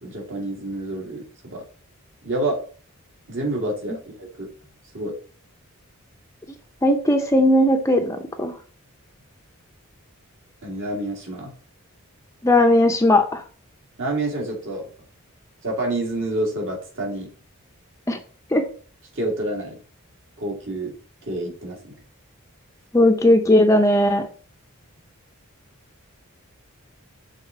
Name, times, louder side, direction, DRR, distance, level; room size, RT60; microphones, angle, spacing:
voice 1, 0.0-1.6 2.2-2.6 3.3-4.5 4.9-5.2 10.6-11.5 14.0-14.8 15.6-17.3 19.2-19.8 20.4-20.9 21.3-21.9, right 1 dB, 60° right, -1 dB, 2.1 m, -28 dB
voice 2, 6.8-8.5 12.4-13.4 18.1-18.2 18.5-18.6 22.9-24.3, left 1 dB, 15° left, 4 dB, 0.6 m, -17 dB
6.6 x 3.6 x 4.7 m, 0.41 s
head